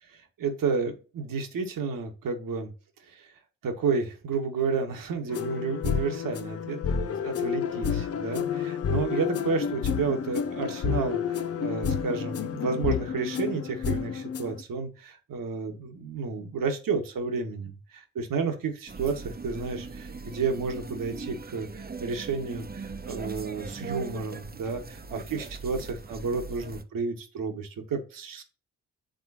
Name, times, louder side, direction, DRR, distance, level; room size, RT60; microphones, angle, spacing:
voice 1, 0.4-2.7 3.1-3.3 3.6-28.4, right 5 dB, 65° right, 5 dB, 1.7 m, -31 dB
sound 1, 5.3-14.6, left 7 dB, 40° left, 0.7 m, -30 dB
sound 2, 18.9-26.8, right 4 dB, 25° right, 1.0 m, -40 dB
9.0 x 3.7 x 2.8 m, 0.34 s
hypercardioid pair, 45°, 36 cm